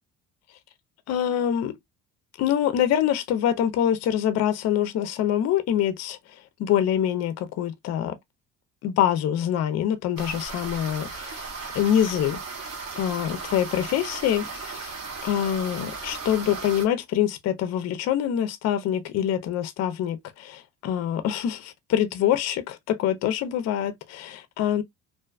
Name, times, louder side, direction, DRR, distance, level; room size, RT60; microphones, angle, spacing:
voice 1, 1.1-1.7 2.4-8.1 8.8-11.5 11.7-12.4 13.0-14.9 15.2-24.8, left 10 dB, 50° left, 0.5 m, -25 dB
sound 1, 10.2-16.9, right 4 dB, 45° right, 1.0 m, -36 dB
2.5 x 2.2 x 2.3 m
cardioid pair, 130°, 33 cm